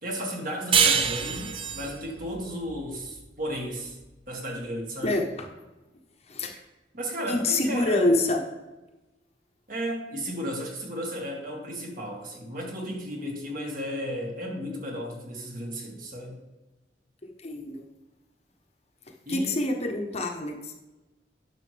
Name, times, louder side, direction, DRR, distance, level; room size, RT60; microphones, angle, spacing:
voice 1, 0.0-4.0 4.3-5.2 6.9-8.1 9.7-16.4 19.3-19.6, equal, 50° right, 0 dB, 1.9 m, -34 dB
sound 1, 0.7-3.9, right 7 dB, 30° right, 0.5 m, -26 dB
voice 2, 7.3-8.4 17.4-17.8 19.3-20.7, left 2 dB, 35° left, 2 dB, 0.9 m, -26 dB
10.0 x 6.3 x 3.4 m, 1.1 s
head